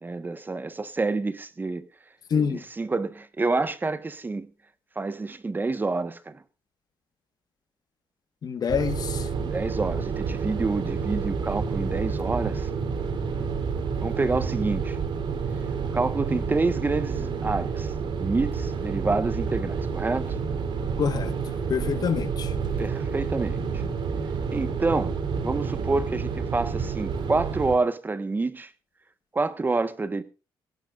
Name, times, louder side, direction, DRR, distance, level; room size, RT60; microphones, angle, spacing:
voice 1, 0.0-1.8 2.3-4.5 5.0-6.4 9.4-12.7 14.0-15.0 15.9-17.9 18.2-20.4 22.8-23.6 24.5-25.2 25.4-28.7 29.3-30.2, right 3 dB, 20° right, 1.3 m, -28 dB
voice 2, 2.3-2.6 8.4-9.2 21.0-21.3 21.7-22.5, left 6 dB, 45° left, 1.5 m, -26 dB
sound 1, 8.7-27.8, right 5 dB, 55° right, 3.4 m, -29 dB
18.5 x 17.5 x 2.5 m
cardioid pair, 115°, 9 cm